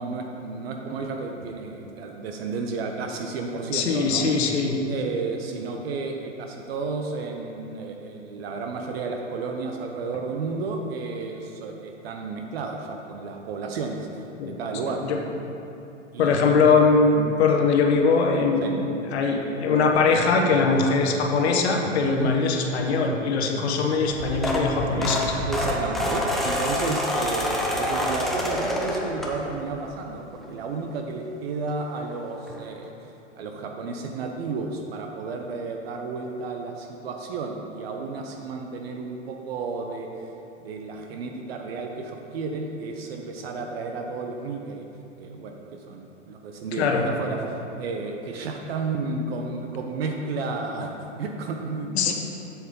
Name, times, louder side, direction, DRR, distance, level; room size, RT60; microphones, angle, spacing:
voice 1, 0.0-4.4 4.9-14.3 14.6-15.0 16.1-16.5 18.6-18.7 22.0-22.3 23.4-23.7 25.4-32.9 33.4-40.1 40.6-44.9 45.2-52.1, right 4 dB, 50° right, 3 dB, 0.8 m, -32 dB
voice 2, 3.7-4.9 14.4-15.2 16.2-18.8 19.1-25.4 46.8-47.0 51.9-52.1, left 4 dB, 55° left, 2 dB, 1.1 m, -21 dB
sound 1, 24.1-29.7 30.2-30.5 31.7-31.8 32.0-32.1 32.5-32.6, left 1 dB, ahead, 0.5 m, -27 dB
7.8 x 7.1 x 3.8 m, 2.9 s
hypercardioid pair, 110°, 38 cm